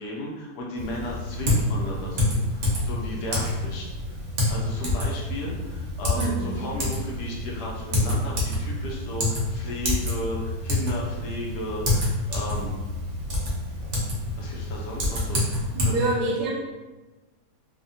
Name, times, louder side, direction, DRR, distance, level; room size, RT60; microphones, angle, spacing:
voice 1, 0.0-3.9 4.5-12.8 14.4-15.9, left 1 dB, 75° left, -3 dB, 1.1 m, -34 dB
Typing, 0.8-15.9, left 1 dB, 55° right, 0.9 m, -27 dB
voice 2, 6.1-6.6 15.7-16.5, right 2 dB, 70° right, -4 dB, 1.2 m, -27 dB
3.3 x 2.1 x 2.6 m, 1.2 s
omnidirectional pair, 1.8 m